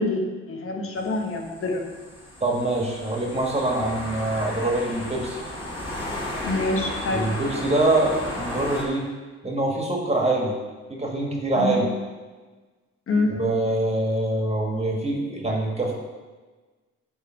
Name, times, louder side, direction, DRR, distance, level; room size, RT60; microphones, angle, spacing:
voice 1, 0.0-1.8 6.4-7.3 11.5-11.8 13.1-13.3, left 2 dB, 45° left, 2 dB, 1.3 m, -26 dB
sound 1, 1.0-8.8, left 1 dB, 15° left, 2.3 m, -34 dB
voice 2, 2.4-5.4 7.1-9.1 9.4-10.5 10.9-11.8 13.3-15.9, right 2 dB, 20° right, -1 dB, 1.6 m, -24 dB
9.4 x 3.4 x 4.6 m, 1.3 s
cardioid pair, 90°, 30 cm